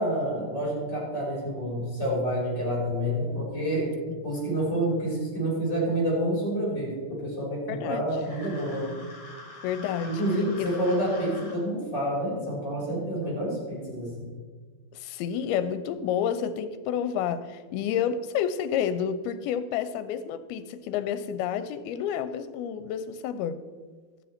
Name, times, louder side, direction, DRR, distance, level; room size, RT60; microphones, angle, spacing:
voice 1, 0.0-3.9 4.2-9.0 10.0-14.3, right 1 dB, 25° left, -4 dB, 4.1 m, -28 dB
voice 2, 4.1-4.5 7.7-8.0 9.6-10.2 10.6-10.7 14.9-23.6, left 8 dB, 85° left, 12 dB, 2.5 m, -30 dB
sound 1, 8.1-11.6, left 2 dB, 50° left, 3.1 m, -45 dB
12.0 x 9.0 x 4.3 m, 1.5 s
omnidirectional pair, 4.4 m